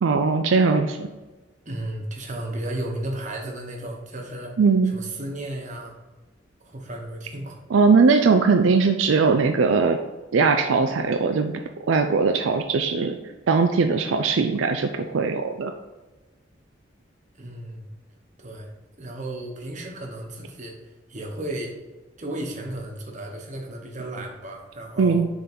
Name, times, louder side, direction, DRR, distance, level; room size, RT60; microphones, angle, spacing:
voice 1, 0.0-1.1 4.6-4.9 7.7-10.0 10.3-11.5 11.9-13.2 13.5-15.7 25.0-25.3, right 4 dB, 75° right, 5 dB, 0.4 m, -20 dB
voice 2, 1.6-4.5 4.9-5.9 6.6-7.6 17.4-17.9 18.4-18.7 19.0-20.8 21.1-21.7 22.2-25.2, right 1 dB, 40° right, 1 dB, 1.1 m, -34 dB
6.8 x 3.8 x 4.3 m, 1.2 s
head